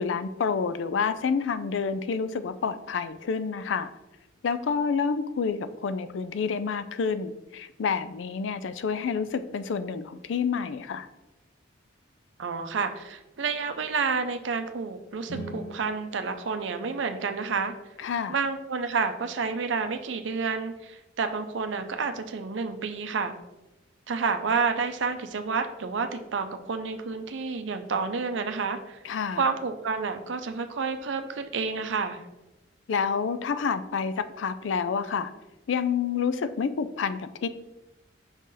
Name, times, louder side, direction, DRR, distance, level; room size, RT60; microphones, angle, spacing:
voice 1, 0.0-3.9 4.4-11.1 18.0-18.4 29.0-29.5 32.9-35.3 35.7-37.5, left 6 dB, 70° left, 12 dB, 0.4 m, -28 dB
voice 2, 12.4-17.7 18.3-23.3 24.1-29.0 29.4-32.2, right 5 dB, 70° right, 8 dB, 0.5 m, -29 dB
sound 1, 15.2-17.4, right 1 dB, 85° left, 1.1 m, -42 dB
6.1 x 4.1 x 3.8 m, 1.0 s
head